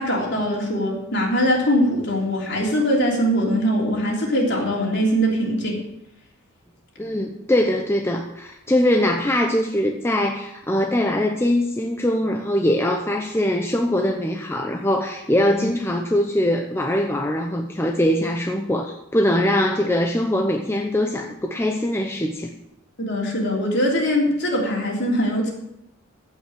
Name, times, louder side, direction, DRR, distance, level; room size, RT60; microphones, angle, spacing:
voice 1, 0.0-5.8 23.0-25.5, equal, 50° left, -2 dB, 3.4 m, -22 dB
voice 2, 7.0-22.5, left 1 dB, 10° left, 3 dB, 0.6 m, -22 dB
15.0 x 5.5 x 6.9 m, 0.84 s
head